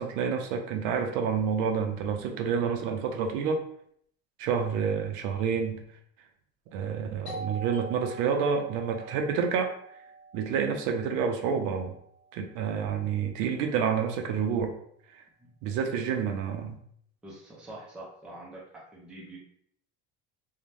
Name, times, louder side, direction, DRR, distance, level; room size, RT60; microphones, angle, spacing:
voice 1, 0.0-3.6 4.4-5.8 6.7-9.7 10.3-12.0 12.3-14.7 15.6-16.8, right 6 dB, 70° right, 4 dB, 0.5 m, -28 dB
Doorbell, 7.3-12.6, right 3 dB, 60° left, 1.3 m, -45 dB
voice 2, 17.2-19.4, right 1 dB, 5° right, -5 dB, 0.4 m, -45 dB
2.6 x 2.2 x 3.1 m, 0.66 s
cardioid pair, 170°, 33 cm